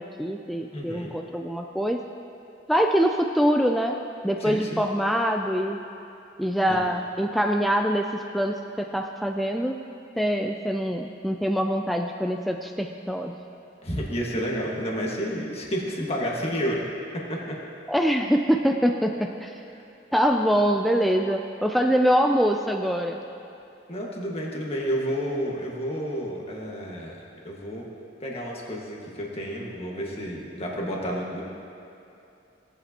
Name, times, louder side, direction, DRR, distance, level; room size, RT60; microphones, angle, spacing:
voice 1, 0.0-2.0 2.7-5.8 6.4-9.8 10.2-13.4 17.9-19.6 20.1-23.2, equal, ahead, 3 dB, 0.3 m, -24 dB
voice 2, 0.7-1.1 4.4-4.8 6.7-6.8 13.8-16.8 17.1-17.6 23.9-27.2 27.4-27.9 28.2-31.4, equal, 35° left, -3 dB, 1.6 m, -30 dB
17.5 x 8.4 x 2.9 m, 2.8 s
head